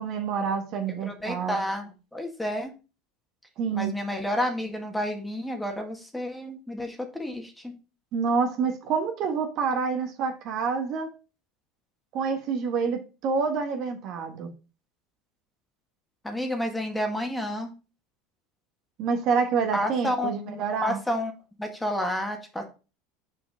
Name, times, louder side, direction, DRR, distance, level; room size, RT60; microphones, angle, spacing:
voice 1, 0.0-1.6 3.6-3.9 8.1-11.1 12.1-14.5 19.0-21.0, right 5 dB, 55° right, 1.5 m, -27 dB
voice 2, 1.0-2.7 3.7-7.7 16.2-17.7 19.7-21.3 21.6-22.6, left 1 dB, 5° left, 1.7 m, -30 dB
6.4 x 4.9 x 3.6 m
hypercardioid pair, 95°, 0 cm